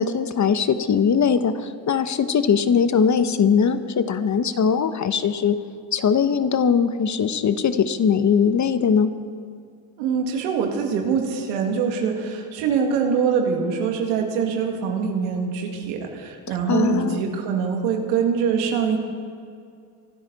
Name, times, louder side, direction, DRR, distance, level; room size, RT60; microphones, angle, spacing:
voice 1, 0.0-5.6 5.9-9.1 16.7-17.2, left 6 dB, 35° left, 12 dB, 0.9 m, -20 dB
voice 2, 10.0-19.0, right 6 dB, 85° right, 2 dB, 2.3 m, -24 dB
23.5 x 12.5 x 4.1 m, 2.3 s
supercardioid pair, 75°, 48 cm